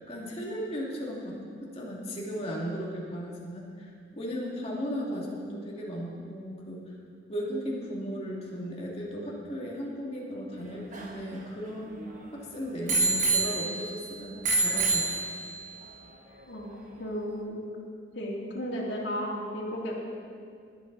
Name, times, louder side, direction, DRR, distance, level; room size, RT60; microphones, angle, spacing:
voice 1, 0.1-1.4 1.7-6.9 7.3-12.0 12.3-15.3, equal, 35° left, -4 dB, 2.6 m, -36 dB
Bicycle bell, 10.6-12.2 12.9-14.0 14.4-15.7 16.4-16.5, right 3 dB, 45° right, 1.4 m, -28 dB
voice 2, 17.0-17.6 18.1-20.0, equal, 70° left, -5 dB, 2.9 m, -34 dB
21.0 x 8.8 x 4.1 m, 2.2 s
head